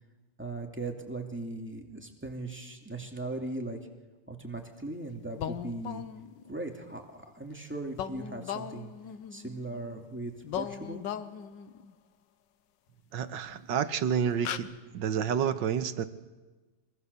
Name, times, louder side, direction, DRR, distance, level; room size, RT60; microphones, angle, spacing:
voice 1, 0.4-3.8 4.3-6.0 6.5-8.9 9.3-11.0, right 2 dB, 5° right, 2 dB, 2.4 m, -38 dB
sound 1, 5.4-6.5 7.9-10.0 10.4-11.9 13.4-13.5 14.0-14.1 14.4-14.6, left 9 dB, 75° left, 1.6 m, -38 dB
voice 2, 13.1-14.7 14.9-16.0, right 8 dB, 80° right, 12 dB, 1.7 m, -29 dB
24.5 x 22.5 x 6.9 m, 1.3 s
omnidirectional pair, 2.0 m